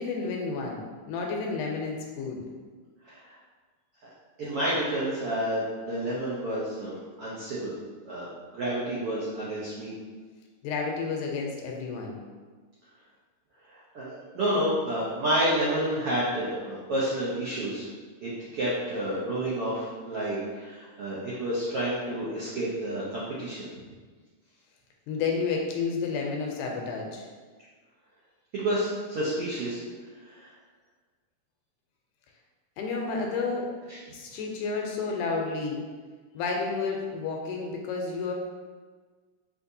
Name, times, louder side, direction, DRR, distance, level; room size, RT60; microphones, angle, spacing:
voice 1, 0.0-2.4 10.6-12.2 25.1-27.3 32.8-33.7 34.1-35.8 36.3-38.3, left 4 dB, 80° left, 0 dB, 2.0 m, -31 dB
voice 2, 4.4-7.7 8.1-8.3 8.5-9.9 13.7-17.9 18.2-23.7 28.5-29.8 30.3-30.5 33.9-34.0, right 1 dB, 90° right, -8 dB, 1.2 m, -30 dB
6.3 x 2.8 x 2.6 m, 1.4 s
omnidirectional pair, 3.8 m